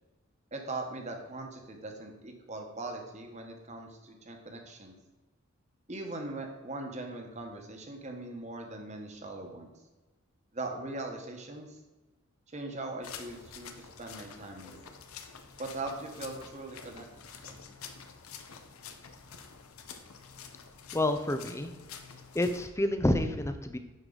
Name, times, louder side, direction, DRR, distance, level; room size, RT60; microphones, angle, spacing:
voice 1, 0.5-5.0 5.9-9.7 10.5-11.8 12.5-14.8 15.6-17.1 17.3-17.7, right 2 dB, 30° right, 3 dB, 1.2 m, -40 dB
sound 1, 13.0-22.7, left 6 dB, 80° left, 0.8 m, -48 dB
voice 2, 20.9-21.7 22.3-23.8, left 1 dB, 15° left, 8 dB, 0.5 m, -28 dB
10.5 x 4.8 x 3.9 m, 1.2 s
head